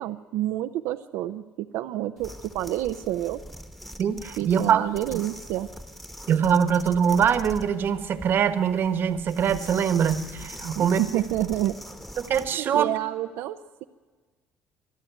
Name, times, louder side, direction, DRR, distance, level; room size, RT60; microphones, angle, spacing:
voice 1, 0.0-3.4 4.4-5.7 10.7-11.8 12.6-13.8, right 13 dB, 80° right, 7 dB, 0.7 m, -29 dB
sound 1, 2.2-12.5, equal, 5° left, 1.3 m, -42 dB
voice 2, 4.0-4.8 6.3-11.0 12.2-12.9, right 8 dB, 45° right, 12 dB, 1.2 m, -23 dB
25.0 x 11.5 x 9.2 m, 1.4 s
cardioid pair, 135°, 5 cm